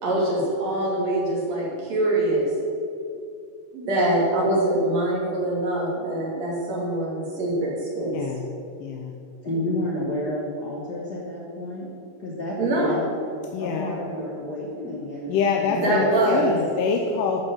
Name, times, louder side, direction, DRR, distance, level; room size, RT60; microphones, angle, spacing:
voice 1, 0.0-2.5 3.7-8.2 12.6-13.0 15.7-16.6, right 1 dB, 55° right, -4 dB, 3.3 m, -24 dB
voice 2, 8.8-9.1 13.5-14.0 15.3-17.4, left 6 dB, 85° left, 2 dB, 2.3 m, -25 dB
voice 3, 9.4-11.9 12.2-13.0 13.6-16.8, left 1 dB, 55° left, -5 dB, 1.1 m, -31 dB
12.0 x 5.3 x 6.2 m, 2.5 s
omnidirectional pair, 3.8 m